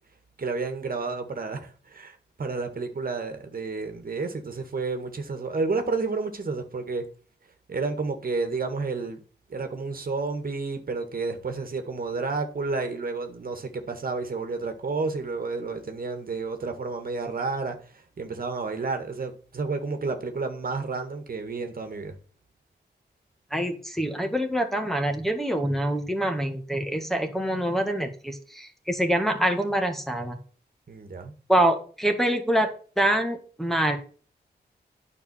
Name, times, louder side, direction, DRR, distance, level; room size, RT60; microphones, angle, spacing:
voice 1, 0.4-7.1 7.7-9.2 9.5-22.2 30.9-31.3, right 4 dB, 55° right, 1.8 m, -31 dB
voice 2, 23.5-30.4 31.5-32.7 33.0-34.0, right 1 dB, ahead, 1.8 m, -25 dB
9.6 x 5.4 x 7.1 m
wide cardioid pair, 85°, 18 cm